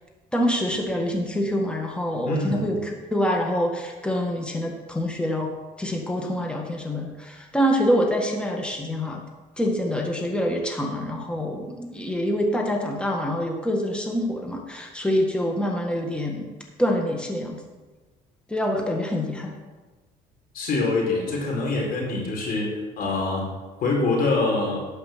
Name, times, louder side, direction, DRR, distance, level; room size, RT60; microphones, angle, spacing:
voice 1, 0.3-5.5 5.8-9.2 9.6-16.5 16.8-17.6 18.5-19.5, equal, 5° left, 1 dB, 1.7 m, -26 dB
voice 2, 2.3-2.6 20.5-23.4 23.8-24.8, left 3 dB, 60° left, -1 dB, 4.4 m, -24 dB
12.0 x 5.4 x 7.7 m, 1.2 s
cardioid pair, 110°, 17 cm